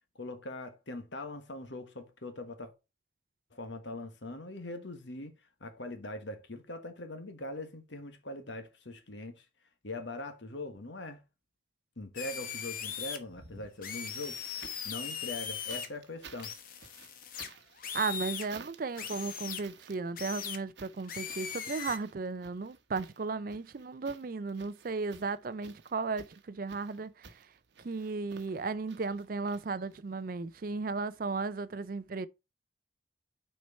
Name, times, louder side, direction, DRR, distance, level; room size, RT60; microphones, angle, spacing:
voice 1, 0.1-2.7 3.5-5.3 5.6-9.4 9.8-11.2 12.0-14.5 14.8-16.5, left 2 dB, 70° left, 1.4 m, -42 dB
sound 1, 12.2-13.2 13.8-15.9 16.4-18.5 19.0-19.6 20.2-20.6 21.1-22.0, left 7 dB, 45° left, 1.0 m, -39 dB
sound 2, 13.3-15.0 15.7-30.2 31.3-31.4, right 5 dB, 65° right, 1.0 m, -54 dB
voice 2, 17.9-27.3 27.8-32.3, right 4 dB, 45° right, 0.4 m, -35 dB
6.3 x 4.6 x 5.3 m
head